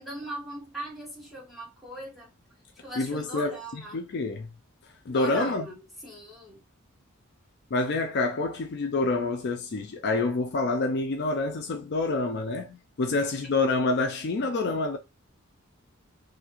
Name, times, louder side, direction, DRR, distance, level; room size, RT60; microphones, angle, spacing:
voice 1, 0.0-2.3 2.7-4.0 5.1-6.6, right 1 dB, ahead, 1.2 m, -40 dB
voice 2, 3.0-4.5 5.1-5.7 7.7-15.0, left 3 dB, 55° left, 0.4 m, -27 dB
2.7 x 2.4 x 2.9 m
head